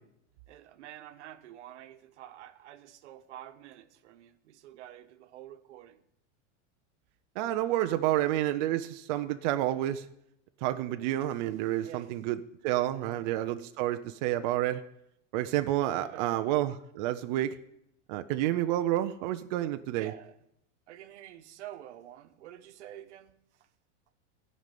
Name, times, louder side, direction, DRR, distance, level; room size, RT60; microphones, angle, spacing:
voice 1, 0.5-6.0 11.4-12.2 13.0-13.4 16.0-16.6 19.9-20.4 20.9-23.7, right 12 dB, 75° right, 1.1 m, -49 dB
voice 2, 7.4-10.1 10.6-14.8 15.3-17.6 18.1-20.1, right 14 dB, 40° right, 0.5 m, -29 dB
15.0 x 5.4 x 9.2 m
supercardioid pair, 165°, 35 cm